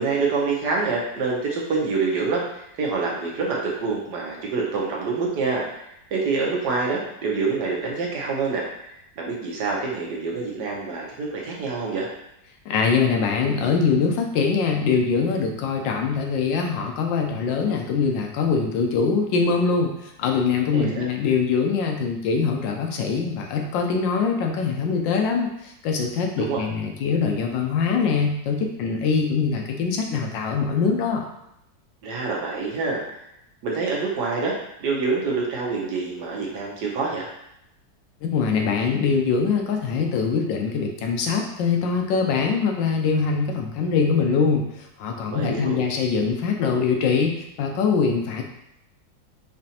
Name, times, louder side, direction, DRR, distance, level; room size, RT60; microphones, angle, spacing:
voice 1, 0.0-5.6 6.1-8.9 9.2-12.1 20.7-21.1 26.3-26.6 32.0-33.0 33.6-34.5 34.8-37.3 45.3-45.8, right 4 dB, 65° right, -2 dB, 1.3 m, -26 dB
voice 2, 12.7-31.2 38.2-48.4, left 5 dB, 80° left, 2 dB, 1.3 m, -23 dB
5.1 x 2.5 x 2.8 m, 0.82 s
omnidirectional pair, 2.0 m